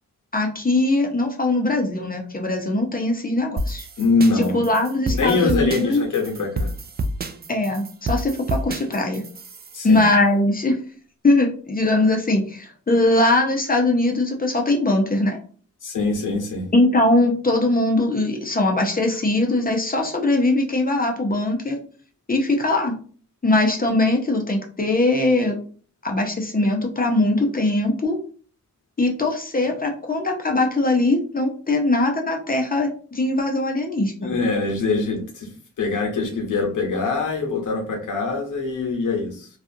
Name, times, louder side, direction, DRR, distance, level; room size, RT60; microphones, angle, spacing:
voice 1, 0.3-3.9 4.3-6.0 7.5-9.2 9.8-10.8 11.2-15.4 16.7-21.8 22.3-22.9 23.4-25.6 26.0-28.2 29.0-34.3, left 2 dB, 30° left, 1 dB, 0.7 m, -21 dB
sound 1, 3.6-9.9, right 1 dB, 35° right, 0.4 m, -29 dB
voice 2, 4.0-4.6 5.1-6.7 9.7-10.0 15.8-16.7 34.2-35.5 35.8-39.5, left 3 dB, 85° left, 1 dB, 0.8 m, -23 dB
2.4 x 2.4 x 2.6 m, 0.42 s
cardioid pair, 60°, 30 cm